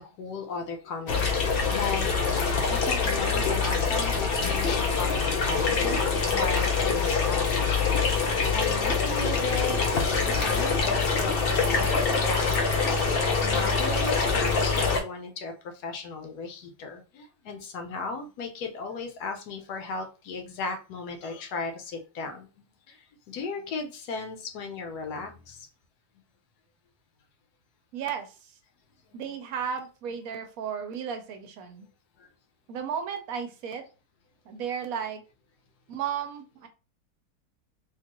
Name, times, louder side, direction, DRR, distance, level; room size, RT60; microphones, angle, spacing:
voice 1, 0.0-1.4 1.7-6.0 6.3-7.5 7.9-8.0 8.5-9.8 10.1-12.5 13.4-15.5 15.8-22.5 23.3-25.7 29.1-29.2 32.2-32.3, left 4 dB, 75° left, 5 dB, 1.2 m, -36 dB
sound 1, 1.1-15.0, left 4 dB, 90° left, 0.5 m, -25 dB
voice 2, 27.9-28.3 29.1-31.9 32.7-33.8 34.5-35.2 35.9-36.7, right 7 dB, 65° right, 7 dB, 1.0 m, -34 dB
3.7 x 2.5 x 2.9 m, 0.32 s
omnidirectional pair, 1.8 m